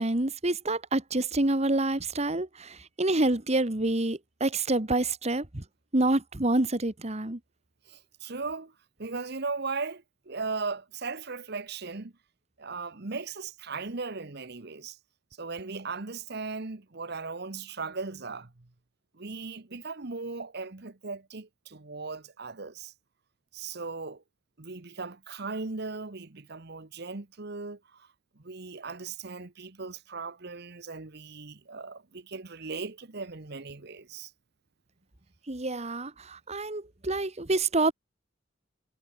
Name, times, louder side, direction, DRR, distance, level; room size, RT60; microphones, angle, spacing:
voice 1, 0.0-5.6 5.9-7.4 35.5-37.9, right 2 dB, 35° right, 1.7 m, -27 dB
voice 2, 7.9-8.7 9.0-12.1 12.6-15.0 15.4-18.7 19.1-22.9 23.5-24.2 24.6-28.1 28.4-34.3, right 4 dB, 55° right, 1.2 m, -37 dB
head